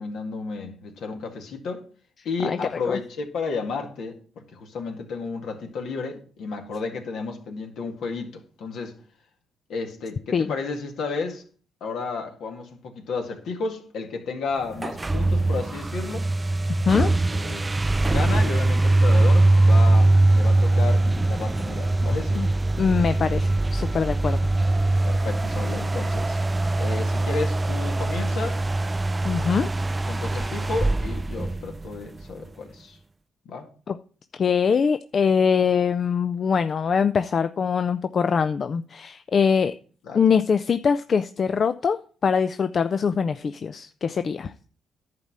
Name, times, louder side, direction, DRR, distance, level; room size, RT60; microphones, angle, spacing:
voice 1, 0.0-1.9 2.3-9.0 9.7-11.5 11.8-16.3 16.9-17.1 17.3-17.7 18.0-22.4 25.0-26.4 26.8-28.6 30.1-33.0 33.5-33.7 40.0-40.2, left 4 dB, 75° left, 1.9 m, -32 dB
sound 1, 14.7-32.2, right 2 dB, 25° right, 0.3 m, -22 dB
voice 2, 22.8-24.4 29.2-29.7 30.4-30.5 33.9-34.0 34.3-39.7 40.1-42.0 42.2-44.5, left 6 dB, 50° left, 0.5 m, -23 dB
10.5 x 4.2 x 7.4 m
supercardioid pair, 55°, 0 cm